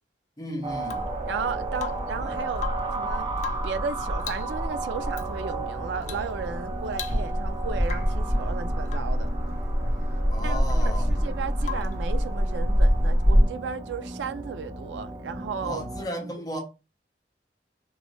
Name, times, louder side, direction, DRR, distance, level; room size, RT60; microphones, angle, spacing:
voice 1, 0.4-1.0 2.2-2.4 10.3-11.3 15.6-16.6, equal, 20° left, 0.8 m, -34 dB
sound 1, 0.6-16.0, right 3 dB, 25° right, 0.6 m, -35 dB
Rain / Water tap faucet / Drip, 0.8-1.2 1.7-2.2 2.5-3.0 3.4-3.8 4.2-4.6 5.1-5.3 6.0-6.3 6.6-6.7 6.9-7.5 7.8-8.2 8.9-9.2 11.6-12.1 14.0-14.1, left 8 dB, 45° left, 0.4 m, -38 dB
sound 2, 1.0-13.4, equal, 50° right, 1.0 m, -27 dB
voice 2, 1.3-2.7 3.0-3.3 3.6-9.3 10.4-16.3, right 5 dB, 80° right, 0.3 m, -35 dB
3.0 x 2.6 x 3.1 m
head